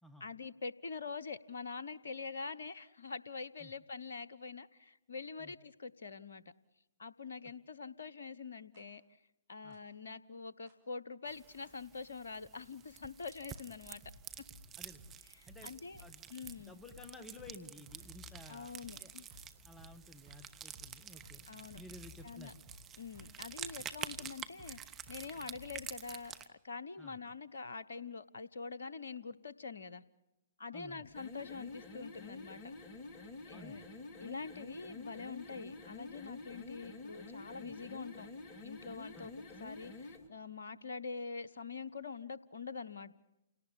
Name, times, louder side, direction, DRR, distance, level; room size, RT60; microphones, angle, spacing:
voice 1, 0.2-6.4 7.0-9.0 9.5-14.0 15.4-16.0 16.3-16.8 18.5-19.3 21.5-21.8 22.2-22.5 23.0-30.0 30.6-32.7 33.5-33.8 34.2-38.3 38.6-39.3 39.6-43.1, left 4 dB, 65° left, 16 dB, 1.0 m, -45 dB
sound 1, 8.7-8.8 9.7-9.8 10.7-10.8 11.6-11.7 12.6-12.7 13.5-13.6 14.0-25.8, left 1 dB, 50° right, 6.8 m, -58 dB
sound 2, 11.3-26.5, right 10 dB, 20° right, 1.2 m, -49 dB
voice 2, 14.8-15.1 15.5-15.7 16.0-16.3 16.7-18.7 19.0-19.1 19.6-22.6 27.0-27.2 30.7-31.1 33.5-33.8 37.6-37.7 39.2-39.3, left 1 dB, 5° left, 8 dB, 1.7 m, -54 dB
sound 3, 31.1-40.3, left 2 dB, 30° left, 2.8 m, -49 dB
29.0 x 18.0 x 10.0 m, 0.97 s
figure-of-eight pair, 120°, 0 cm